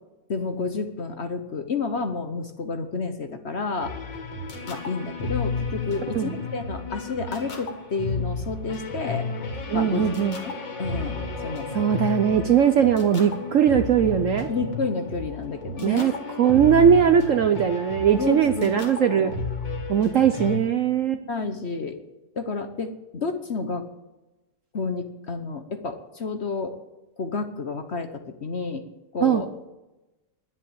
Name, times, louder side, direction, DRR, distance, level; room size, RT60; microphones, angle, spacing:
voice 1, 0.3-3.9 4.7-9.3 9.7-10.1 10.4-10.5 10.8-11.7 14.5-16.1 16.4-16.6 18.2-19.4 21.3-22.0 22.3-23.8 24.7-26.8 27.2-28.8 29.1-29.5, left 4 dB, 45° left, 7 dB, 1.0 m, -30 dB
sound 1, 3.8-20.6, left 3 dB, 85° left, 2.8 m, -32 dB
voice 2, 9.7-10.4 11.7-14.5 15.8-16.1 16.4-19.3 19.9-21.2 29.2-29.4, right 8 dB, 60° right, 9 dB, 0.8 m, -20 dB
11.0 x 10.0 x 8.6 m, 1.0 s
omnidirectional pair, 1.9 m